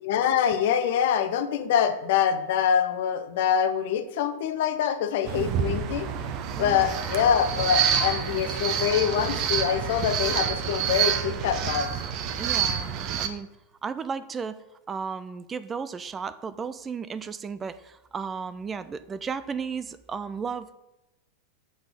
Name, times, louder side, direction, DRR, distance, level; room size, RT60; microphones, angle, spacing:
voice 1, 0.0-6.1 6.5-11.9, left 8 dB, 55° left, 9 dB, 0.8 m, -25 dB
sound 1, 5.3-13.3, right 8 dB, 40° right, 0.8 m, -28 dB
voice 2, 6.5-7.0 12.4-13.5 13.8-20.7, right 5 dB, 20° right, 14 dB, 0.4 m, -34 dB
7.8 x 6.4 x 5.2 m, 0.95 s
figure-of-eight pair, 90°, 0 cm